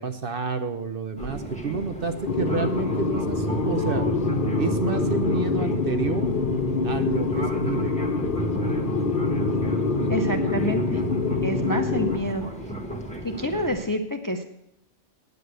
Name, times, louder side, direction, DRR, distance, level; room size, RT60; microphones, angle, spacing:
voice 1, 0.0-4.0 4.6-6.4 6.8-7.9, right 4 dB, 50° right, 9 dB, 0.8 m, -29 dB
Fixed-wing aircraft airplane, 1.2-13.8, right 1 dB, 5° left, 1.3 m, -35 dB
sound 1, 2.3-12.2, left 3 dB, 45° left, 1.0 m, -25 dB
voice 2, 10.1-11.0 11.4-12.5 13.2-14.4, equal, 20° left, 6 dB, 0.6 m, -27 dB
9.4 x 8.2 x 8.0 m, 0.79 s
omnidirectional pair, 1.3 m